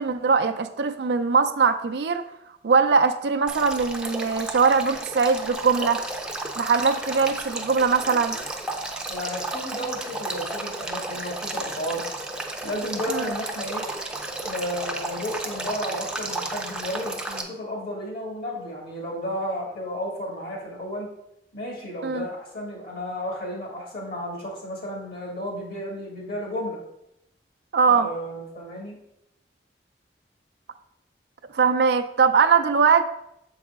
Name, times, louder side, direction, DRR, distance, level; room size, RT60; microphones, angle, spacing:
voice 1, 0.0-2.3 2.6-6.0 6.6-8.4 13.1-13.3 22.0-22.3 27.7-28.1 31.5-33.0, right 5 dB, 70° right, 7 dB, 0.4 m, -21 dB
Male speech man speaking / Stream / Trickle dribble, 3.5-17.4, right 2 dB, 5° right, 0.6 m, -33 dB
voice 2, 9.1-12.0 12.6-13.9 14.4-21.1 21.5-26.8 27.9-29.0, equal, 60° left, -2 dB, 2.3 m, -33 dB
7.0 x 4.8 x 3.6 m, 0.80 s
head